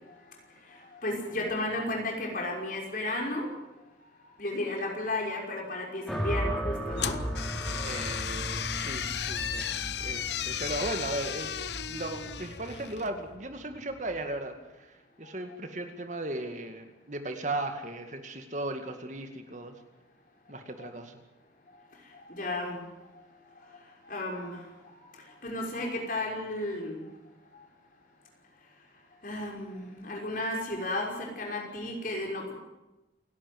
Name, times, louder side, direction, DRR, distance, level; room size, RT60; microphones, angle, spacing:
voice 1, 0.7-3.5 4.4-7.2 20.8-20.9 22.3-22.8 24.1-24.6 25.4-27.0 29.2-32.5, left 1 dB, 45° left, 0 dB, 5.9 m, -33 dB
sound 1, 6.1-14.3, right 1 dB, 5° left, 3.3 m, -36 dB
sound 2, 7.0-13.1, left 9 dB, 65° left, 0.8 m, -35 dB
voice 2, 7.8-11.6 11.9-19.8 20.5-21.2, right 2 dB, 40° right, 6 dB, 2.2 m, -37 dB
28.5 x 12.0 x 9.6 m, 1.0 s
head